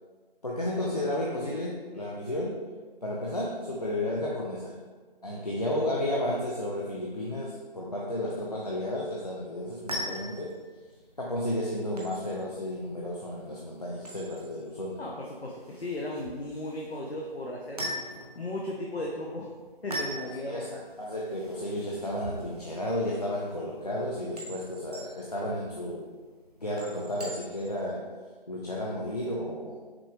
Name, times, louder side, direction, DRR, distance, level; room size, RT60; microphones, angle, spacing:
voice 1, 0.4-2.6 3.0-4.8 5.2-10.6 11.2-15.0 20.2-26.1 26.6-28.1 28.5-29.8, left 1 dB, 40° left, -4 dB, 0.4 m, -32 dB
sound 1, 9.6-27.9, equal, 40° right, 0.7 m, -42 dB
voice 2, 15.0-17.8 18.4-19.5 19.8-20.7, left 1 dB, 90° left, -2 dB, 0.7 m, -35 dB
5.9 x 3.2 x 2.3 m, 1.4 s
figure-of-eight pair, 160°, 30 cm